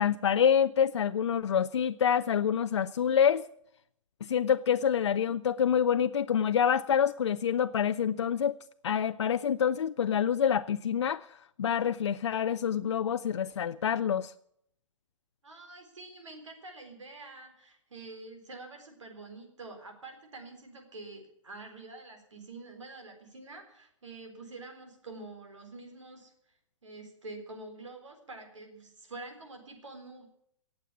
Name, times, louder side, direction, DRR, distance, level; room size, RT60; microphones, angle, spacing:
voice 1, 0.0-3.4 4.3-8.6 8.8-11.3 11.6-14.3, left 8 dB, 60° left, 0.5 m, -27 dB
voice 2, 15.4-26.3 26.8-30.3, right 2 dB, 70° right, 4.1 m, -47 dB
18.0 x 7.5 x 8.4 m
figure-of-eight pair, 115°, 16 cm